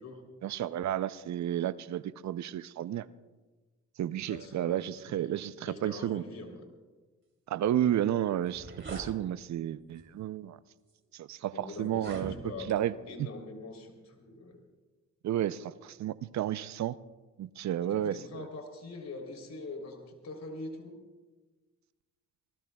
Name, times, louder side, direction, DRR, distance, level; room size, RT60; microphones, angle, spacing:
voice 1, 0.4-3.1 4.0-6.2 7.5-10.6 11.1-12.3 12.7-12.9 13.2-13.3 15.2-17.0 17.4-18.5, right 11 dB, 65° right, 16 dB, 0.6 m, -32 dB
voice 2, 4.3-5.3 5.6-6.6 11.4-14.6 17.8-21.0, left 2 dB, 65° left, 3 dB, 3.4 m, -44 dB
sound 1, 8.4-9.1 10.0-10.2 10.9-11.0 11.9-12.8, right 3 dB, 40° right, 3.2 m, -43 dB
25.0 x 19.0 x 2.3 m, 1.3 s
supercardioid pair, 60°, 30 cm